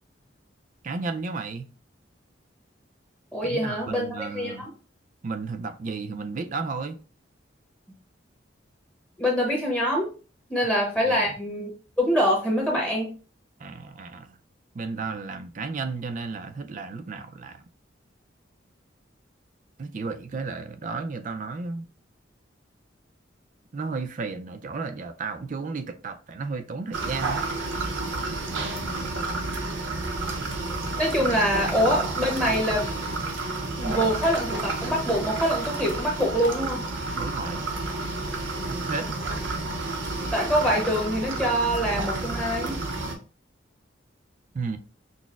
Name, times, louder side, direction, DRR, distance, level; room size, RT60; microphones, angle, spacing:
voice 1, 0.8-1.7 3.4-4.7 5.2-7.0 11.1-11.3 13.6-14.4 14.7-17.6 19.8-21.9 23.7-27.4 37.2-37.7 38.7-39.3 44.5-44.8, right 4 dB, 45° right, 0.4 m, -33 dB
voice 2, 3.3-4.7 9.2-10.1 10.5-11.7 12.0-13.1 31.0-32.9 33.8-36.8 40.3-42.8, equal, 5° left, 0.9 m, -25 dB
sound 1, 26.9-43.1, right 2 dB, 80° right, 0.7 m, -30 dB
6.0 x 2.1 x 2.3 m
head